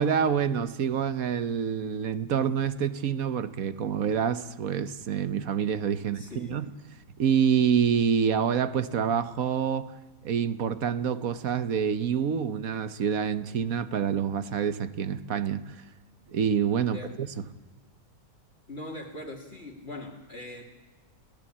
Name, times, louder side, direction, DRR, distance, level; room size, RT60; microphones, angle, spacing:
voice 1, 0.0-6.7 7.2-9.9 10.2-15.8 16.3-17.4, right 7 dB, 60° right, 1.3 m, -27 dB
voice 2, 6.0-6.6 16.8-17.1 18.7-20.6, left 2 dB, 35° left, 2.5 m, -41 dB
29.5 x 17.5 x 8.6 m
omnidirectional pair, 1.9 m